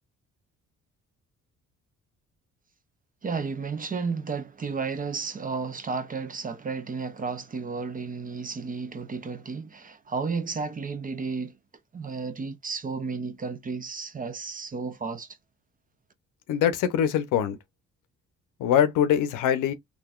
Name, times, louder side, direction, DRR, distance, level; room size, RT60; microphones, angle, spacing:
voice 1, 3.2-11.5 11.9-15.3, right 4 dB, 30° right, 0.6 m, -32 dB
voice 2, 16.5-17.6 18.6-19.7, left 9 dB, 90° left, 0.7 m, -23 dB
3.8 x 2.4 x 2.4 m
cardioid pair, 90°, 30 cm